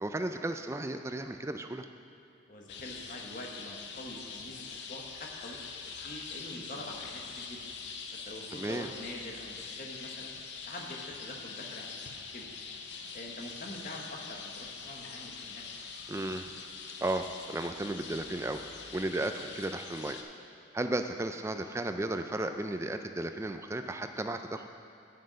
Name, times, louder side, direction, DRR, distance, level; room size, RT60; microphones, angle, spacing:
voice 1, 0.0-1.9 8.5-8.9 16.1-16.5 17.0-18.6 18.9-20.2 20.7-24.7, right 2 dB, 15° right, 7 dB, 0.3 m, -34 dB
voice 2, 2.5-7.7 8.1-10.3 10.6-12.5 13.1-15.6, left 1 dB, 45° left, 0 dB, 1.1 m, -45 dB
sound 1, 2.7-20.2, left 5 dB, 70° left, 0.6 m, -44 dB
8.8 x 7.8 x 5.1 m, 2.7 s
head